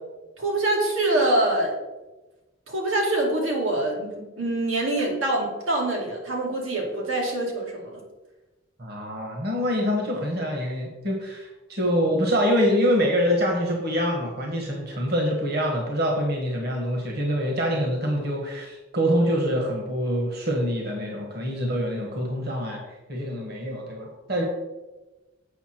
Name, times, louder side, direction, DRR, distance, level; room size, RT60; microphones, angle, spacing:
voice 1, 0.4-1.7 2.7-8.0, right 2 dB, 90° right, -2 dB, 2.2 m, -25 dB
voice 2, 8.8-22.8 23.1-24.4, equal, 50° right, 0 dB, 1.4 m, -25 dB
8.2 x 5.5 x 4.4 m, 1.1 s
head